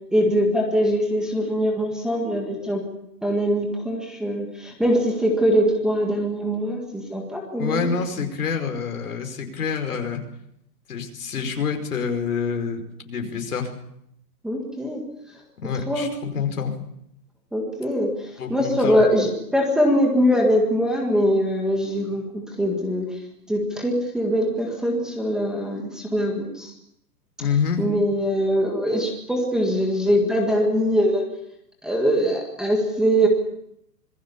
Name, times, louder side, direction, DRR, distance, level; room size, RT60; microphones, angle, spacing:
voice 1, 0.1-2.8 3.2-7.9 14.4-15.0 15.9-16.1 17.5-23.1 23.5-26.7 27.8-31.2 31.8-33.3, equal, ahead, 1 dB, 1.8 m, -22 dB
voice 2, 7.6-10.2 10.9-13.7 15.6-16.7 18.4-19.0 27.4-27.8, left 6 dB, 65° left, 5 dB, 5.1 m, -27 dB
26.5 x 21.0 x 7.0 m, 0.77 s
hypercardioid pair, 170°, 49 cm